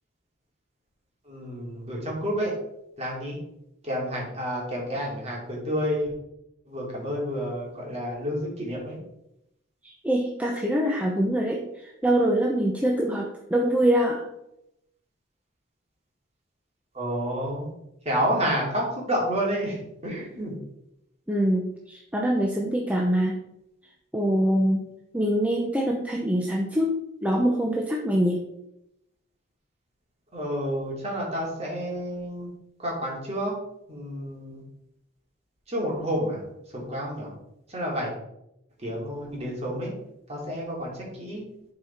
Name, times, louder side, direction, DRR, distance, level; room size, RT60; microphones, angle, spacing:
voice 1, 1.2-2.5 3.0-3.4 3.8-6.1 6.7-9.0 16.9-17.7 18.0-20.5 30.3-32.5 32.8-33.5 33.9-34.6 35.7-36.4 36.7-37.3 37.7-38.1 38.8-39.9 40.3-41.4, equal, 30° right, -3 dB, 2.8 m, -29 dB
voice 2, 9.8-14.2 21.3-23.4 24.1-24.8 25.1-28.4, right 1 dB, 5° right, -1 dB, 0.7 m, -24 dB
11.0 x 4.9 x 4.3 m, 0.84 s
head